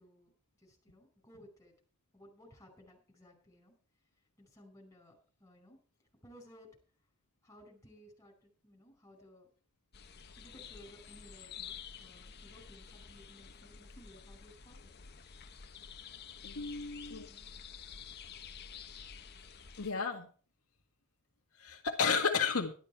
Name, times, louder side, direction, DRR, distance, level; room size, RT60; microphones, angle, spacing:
voice 1, 0.0-1.7 2.1-3.8 4.4-5.8 6.2-6.8 7.4-9.5 10.4-15.0 16.6-17.7, left 1 dB, 15° left, 1 dB, 5.2 m, -59 dB
sound 1, 9.9-19.9, left 7 dB, 45° left, 1.0 m, -50 dB
voice 2, 16.4-17.3 19.8-20.3 21.6-22.7, left 5 dB, 80° left, 1 dB, 1.8 m, -32 dB
12.5 x 11.5 x 4.6 m, 0.39 s
head